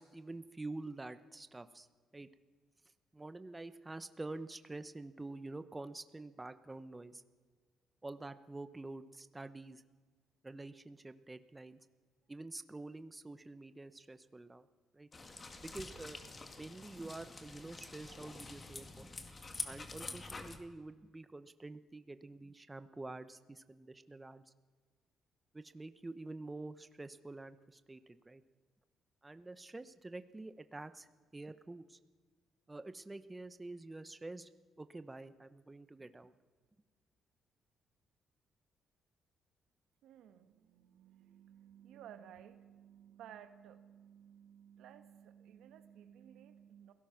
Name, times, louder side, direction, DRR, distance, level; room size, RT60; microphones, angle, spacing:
voice 1, 0.0-1.9 2.1-2.3 3.1-7.2 8.0-9.8 10.4-11.8 12.3-14.7 14.9-15.1 15.6-16.2 16.6-19.1 19.6-24.4 25.5-28.4 29.2-31.1 31.3-32.0 32.7-34.5 34.8-36.3, right 2 dB, 20° right, 11 dB, 1.1 m, -47 dB
sound 1, 15.1-20.6, left 3 dB, 30° left, 2.2 m, -47 dB
voice 2, 40.0-46.9, right 9 dB, 85° right, 9 dB, 1.4 m, -56 dB
29.0 x 17.0 x 6.0 m, 1.5 s
cardioid pair, 90°, 0 cm